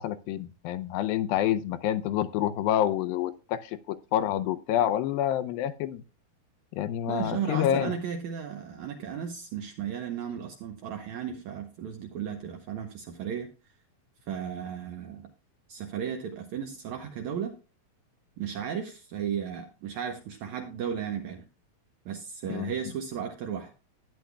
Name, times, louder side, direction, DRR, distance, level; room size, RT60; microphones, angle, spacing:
voice 1, 0.0-6.0 6.7-8.0 22.5-22.7, left 11 dB, 80° left, 12 dB, 2.3 m, -28 dB
voice 2, 7.1-13.5 14.3-15.2 15.7-17.5 18.4-21.5 22.1-23.7, right 8 dB, 75° right, 4 dB, 1.8 m, -35 dB
12.0 x 9.7 x 2.3 m, 0.32 s
omnidirectional pair, 4.2 m